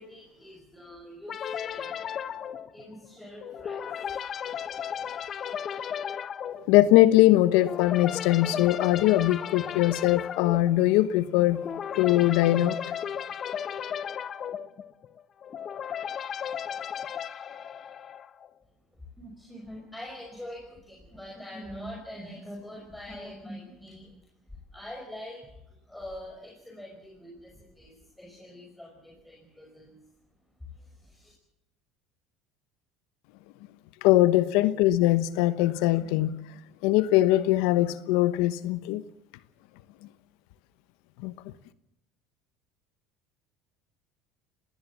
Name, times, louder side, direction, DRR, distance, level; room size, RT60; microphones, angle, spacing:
voice 1, 0.0-2.4 2.7-3.9 5.0-5.1 19.2-24.1 24.7-30.0 30.7-31.3, equal, 5° left, 5.4 m, -44 dB
sound 1, 1.3-18.5, left 8 dB, 40° left, 1.0 m, -35 dB
voice 2, 6.7-11.6 12.0-12.8 34.0-36.3 36.8-39.0 41.2-41.3, left 15 dB, 75° left, 1.0 m, -21 dB
21.0 x 18.0 x 7.4 m
supercardioid pair, 95°, 0 cm